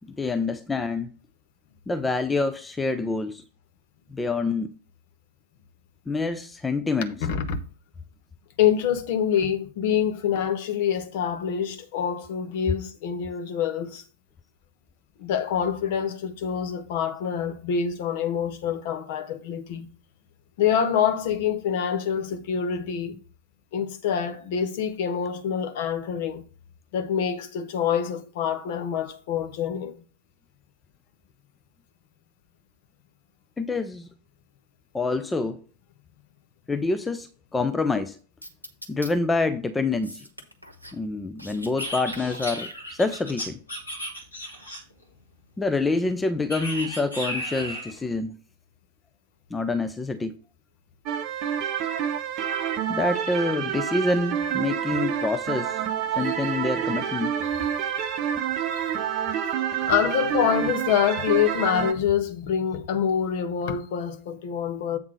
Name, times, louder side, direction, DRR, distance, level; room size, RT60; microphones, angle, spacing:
voice 1, 0.2-1.2 1.9-3.4 4.1-4.7 6.1-7.2 33.6-34.1 34.9-35.6 36.7-38.2 38.9-40.2 40.9-43.6 45.6-48.4 49.5-50.4 52.9-55.8 56.2-57.4, left 3 dB, 10° left, 0.5 m, -26 dB
voice 2, 7.2-7.6 8.6-14.0 15.2-19.9 20.6-23.1 23.7-26.4 26.9-30.0 56.3-56.4 58.7-58.9 59.8-65.0, left 8 dB, 50° left, 0.9 m, -26 dB
sound 1, 38.4-39.1 40.0-41.0 41.3-41.9 42.1-43.2, equal, 90° right, 1.0 m, -41 dB
sound 2, 41.8-45.0 46.5-48.0, equal, 80° left, 2.5 m, -34 dB
sound 3, 51.1-61.9, right 9 dB, 40° right, 0.8 m, -28 dB
7.9 x 3.5 x 6.3 m
figure-of-eight pair, 90°, 0 cm